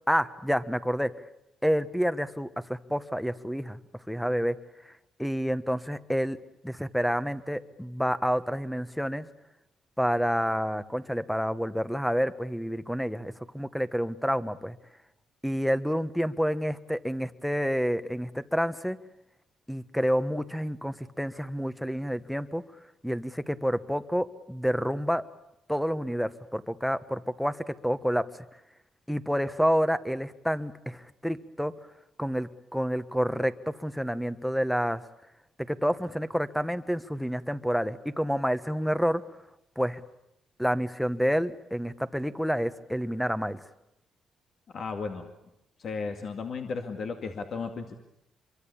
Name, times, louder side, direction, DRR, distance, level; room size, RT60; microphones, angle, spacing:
voice 1, 0.1-1.1 1.6-3.8 4.1-4.6 5.2-6.4 6.6-9.3 10.0-14.8 15.4-19.0 19.7-22.6 23.0-25.2 25.7-28.3 29.1-31.7 32.2-35.0 35.7-39.2 39.8-40.0 40.6-43.6, equal, ahead, 13 dB, 1.2 m, -28 dB
voice 2, 44.7-45.2 45.8-48.0, left 4 dB, 55° left, 4 dB, 2.2 m, -34 dB
26.5 x 23.5 x 8.6 m, 0.85 s
cardioid pair, 90°, 0 cm